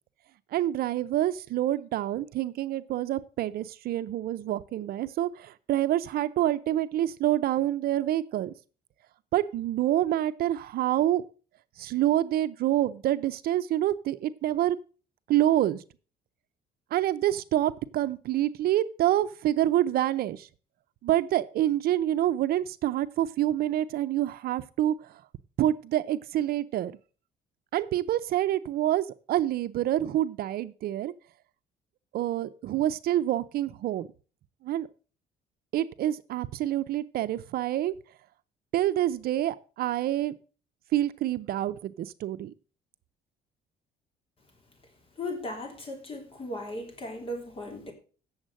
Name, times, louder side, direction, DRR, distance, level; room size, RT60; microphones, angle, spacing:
voice 1, 0.5-8.5 9.3-11.2 11.8-14.8 15.3-15.8 16.9-20.5 21.0-24.9 25.6-26.9 27.7-31.1 32.1-34.1 34.6-34.9 35.7-37.9 38.7-40.3 40.9-42.5, right 13 dB, 65° right, 0.6 m, -27 dB
voice 2, 45.2-47.9, left 1 dB, 35° left, 3.1 m, -37 dB
8.9 x 7.2 x 6.4 m
cardioid pair, 110°, 17 cm